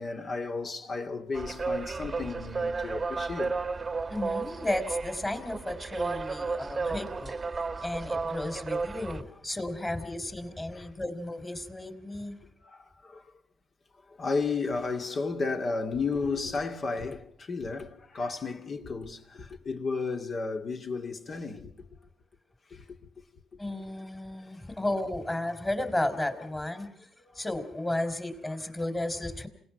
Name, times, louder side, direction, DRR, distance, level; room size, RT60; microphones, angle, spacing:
voice 1, 0.0-3.6 6.9-7.0 10.7-10.9 12.6-13.3 13.9-21.9 22.7-23.2 27.2-27.4, left 4 dB, 50° left, 2.3 m, -33 dB
sound 1, 1.3-9.2, right 4 dB, 35° right, 1.1 m, -33 dB
voice 2, 4.1-7.4 7.8-12.4 23.6-26.9 27.3-29.5, left 1 dB, 20° left, 3.4 m, -33 dB
28.0 x 17.5 x 5.8 m
hypercardioid pair, 50°, 0 cm